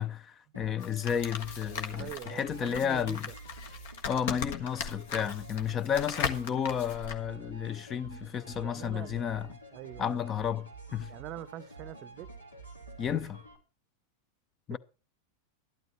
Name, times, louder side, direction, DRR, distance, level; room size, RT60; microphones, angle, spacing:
voice 1, 0.0-3.3 4.1-9.5 10.0-11.1 13.0-13.4 14.7-14.8, left 8 dB, 25° left, 0.7 m, -32 dB
sound 1, 0.5-13.6, right 3 dB, 80° left, 3.0 m, -48 dB
sound 2, 0.8-7.2, left 6 dB, 55° left, 1.5 m, -38 dB
voice 2, 1.9-3.3 8.6-9.2 9.7-10.2 11.1-12.3 14.7-14.8, right 13 dB, 35° right, 0.7 m, -44 dB
12.5 x 12.0 x 4.4 m
figure-of-eight pair, 90°, 0 cm